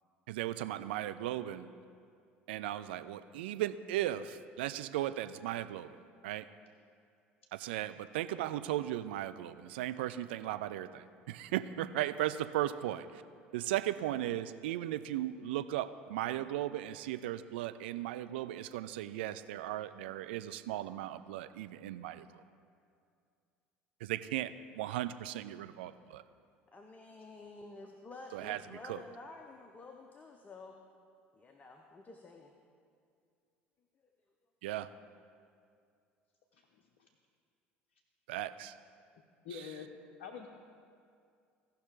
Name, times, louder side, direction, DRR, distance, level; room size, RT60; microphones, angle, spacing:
voice 1, 0.3-1.7 2.5-6.0 6.2-6.5 7.5-13.2 13.5-22.3 24.0-26.2 28.3-29.0 34.6-34.9 38.3-38.7 39.5-39.7, right 13 dB, 65° right, 11 dB, 0.4 m, -37 dB
voice 2, 26.7-30.8 31.3-32.5, left 3 dB, 25° left, 3 dB, 0.8 m, -51 dB
voice 3, 39.4-40.5, left 6 dB, 60° left, 2 dB, 0.7 m, -46 dB
17.0 x 5.7 x 3.7 m, 2.3 s
figure-of-eight pair, 60°, 6 cm